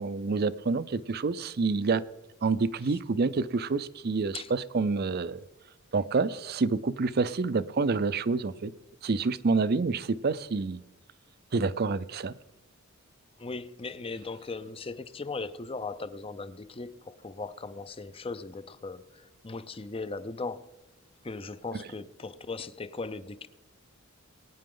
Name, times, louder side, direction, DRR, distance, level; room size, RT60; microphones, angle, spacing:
voice 1, 0.0-2.0 2.4-5.4 5.9-8.7 9.0-10.8 11.5-12.3, right 4 dB, 50° right, 0.5 m, -28 dB
voice 2, 13.4-20.7 21.2-23.5, left 3 dB, 25° left, 0.6 m, -38 dB
21.5 x 9.5 x 3.8 m
head